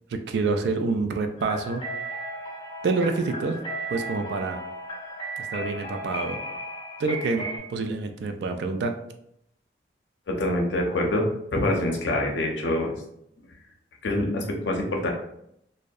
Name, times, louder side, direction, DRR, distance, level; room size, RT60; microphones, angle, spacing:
voice 1, 0.1-1.8 2.8-3.6 3.9-4.6 5.5-6.4 7.0-8.9, right 3 dB, 75° right, 7 dB, 0.3 m, -27 dB
sound 1, 1.4-7.6, right 1 dB, 30° left, 0.4 m, -35 dB
voice 2, 10.3-12.9 14.0-15.1, left 1 dB, 90° left, 1 dB, 0.5 m, -25 dB
2.6 x 2.0 x 2.3 m, 0.76 s
head